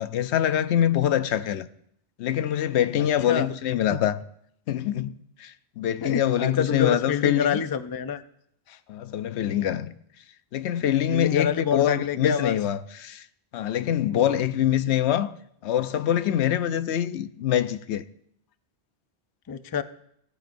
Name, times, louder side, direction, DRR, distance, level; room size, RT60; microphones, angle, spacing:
voice 1, 0.0-1.7 2.2-4.2 4.7-5.1 5.4-7.6 8.9-9.9 10.5-13.3 13.5-15.3 15.6-18.0, left 10 dB, 85° left, 0.9 m, -24 dB
voice 2, 3.0-3.5 3.9-4.0 6.0-8.2 8.7-8.8 11.1-12.6 14.1-14.3 19.5-19.8, left 7 dB, 35° left, 0.3 m, -27 dB
16.5 x 14.5 x 2.6 m
omnidirectional pair, 1.1 m